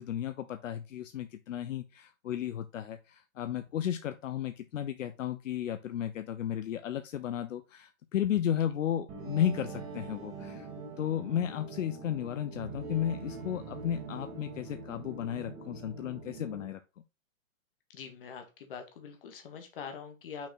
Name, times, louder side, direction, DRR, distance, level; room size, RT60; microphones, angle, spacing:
voice 1, 0.0-10.7 11.0-16.8, left 10 dB, 70° left, 10 dB, 0.7 m, -34 dB
sound 1, 9.1-16.7, right 4 dB, 15° right, 1.3 m, -43 dB
voice 2, 17.9-20.5, left 6 dB, 45° left, 6 dB, 1.6 m, -44 dB
6.0 x 4.3 x 4.1 m, 0.28 s
hypercardioid pair, 170°, 39 cm